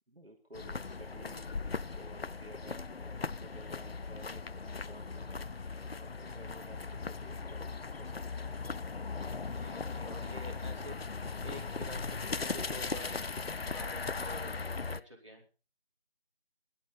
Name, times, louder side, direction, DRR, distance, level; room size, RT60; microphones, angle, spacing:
voice 1, 0.1-5.5 5.8-8.8, equal, 75° right, 3 dB, 3.0 m, -54 dB
sound 1, 0.5-15.0, left 4 dB, 75° left, 0.7 m, -38 dB
voice 2, 9.4-10.9 11.4-13.2 13.6-14.5 14.9-15.4, left 1 dB, 30° right, -3 dB, 4.8 m, -48 dB
19.5 x 11.5 x 4.1 m, 0.34 s
figure-of-eight pair, 180°, 30 cm